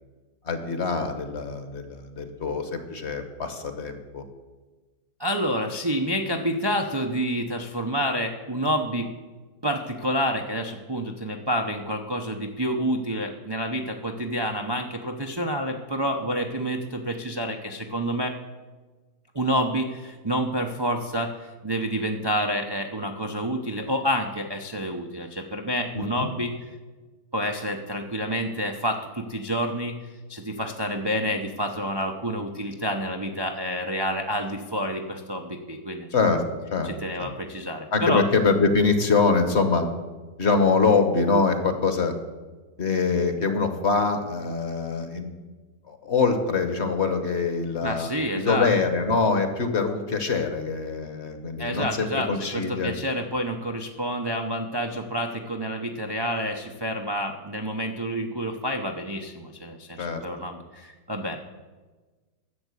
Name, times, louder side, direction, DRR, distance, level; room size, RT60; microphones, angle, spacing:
voice 1, 0.4-4.2 25.9-26.3 36.1-36.4 36.7-36.9 37.2-37.3 37.9-39.9 40.4-42.1 42.8-45.4 45.9-48.1 48.3-52.9 60.0-60.2, left 4 dB, 45° left, 7 dB, 1.3 m, -24 dB
voice 2, 5.2-9.1 9.6-18.4 19.3-26.7 27.3-36.1 36.8-38.2 47.8-48.7 51.6-61.4, equal, 40° right, 3 dB, 0.3 m, -28 dB
11.0 x 7.2 x 8.2 m, 1.3 s
omnidirectional pair, 1.8 m